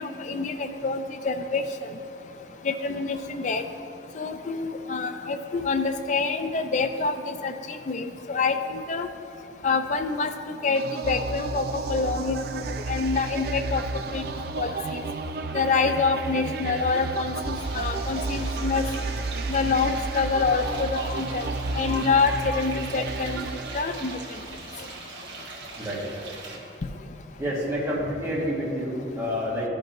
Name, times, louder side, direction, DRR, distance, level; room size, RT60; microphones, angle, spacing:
voice 1, 0.0-1.6 2.6-3.6 4.2-9.1 9.6-12.6 12.9-13.8 14.1-14.2 14.6-15.0 15.5-18.8 19.5-21.5 21.7-23.4 23.7-24.1, left 4 dB, 40° left, 8 dB, 0.4 m, -26 dB
sound 1, 10.7-24.4, right 3 dB, 55° right, 0.3 m, -32 dB
sound 2, 17.5-26.6, right 3 dB, 70° right, 1.3 m, -41 dB
voice 2, 27.4-29.7, equal, 15° right, -8 dB, 1.6 m, -28 dB
13.5 x 5.2 x 3.0 m, 2.7 s
head